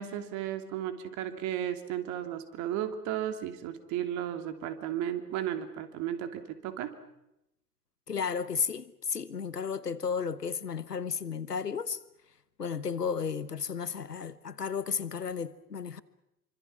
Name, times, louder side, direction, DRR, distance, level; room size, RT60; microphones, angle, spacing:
voice 1, 0.0-6.9, right 10 dB, 40° right, 2.9 m, -34 dB
voice 2, 8.1-12.0 12.6-16.0, left 6 dB, 85° left, 1.2 m, -33 dB
26.5 x 25.5 x 6.1 m
figure-of-eight pair, 95°, 46 cm